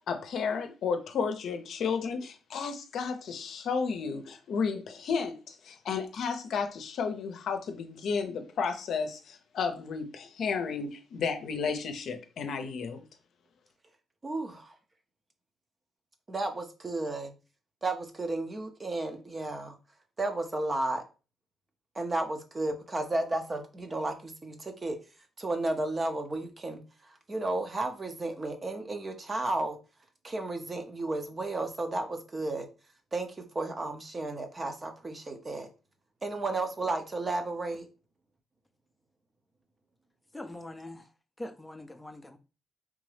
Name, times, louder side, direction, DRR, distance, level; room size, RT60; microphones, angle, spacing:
voice 1, 0.1-13.0, left 5 dB, 65° left, 0.6 m, -32 dB
voice 2, 14.2-14.7 16.3-17.3 17.8-19.8 20.2-21.0 22.0-25.0 25.4-26.8 27.3-29.8 30.2-32.7 33.1-35.7 36.2-37.9, right 2 dB, 25° right, 0.7 m, -33 dB
voice 3, 40.3-41.0 41.4-42.4, left 1 dB, 10° left, 0.5 m, -42 dB
3.5 x 2.6 x 3.3 m
cardioid pair, 90°, 0 cm